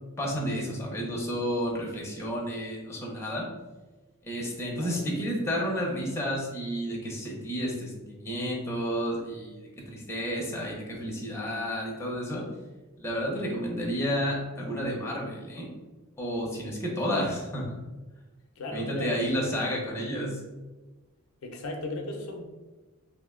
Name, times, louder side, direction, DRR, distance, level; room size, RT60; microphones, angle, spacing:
voice 1, 0.2-3.5 4.2-12.4 13.0-15.7 16.2-17.8 18.7-20.4, equal, 10° left, -3 dB, 0.6 m, -31 dB
voice 2, 18.6-19.8 21.4-22.4, left 2 dB, 70° left, 2 dB, 0.5 m, -36 dB
2.7 x 2.1 x 3.5 m, 1.2 s
head